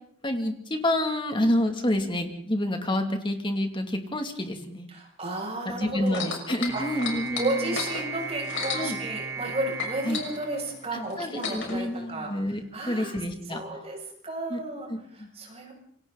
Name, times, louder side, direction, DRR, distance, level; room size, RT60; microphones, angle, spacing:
voice 1, 0.2-4.9 5.7-7.8 8.7-9.0 10.0-10.2 10.9-13.6 14.5-14.6 14.9-15.3, left 1 dB, 25° left, 5 dB, 2.5 m, -28 dB
voice 2, 4.9-6.2 6.7-6.8 7.4-12.3 12.7-13.2 13.5-14.0 14.2-14.9 15.2-15.7, right 2 dB, 30° right, -1 dB, 7.1 m, -33 dB
sound 1, 6.1-9.5 9.8-11.8 12.6-12.7, left 6 dB, 60° left, 5.9 m, -34 dB
sound 2, 6.7-11.2, right 4 dB, 15° right, 0.9 m, -36 dB
27.5 x 24.0 x 4.0 m, 0.65 s
head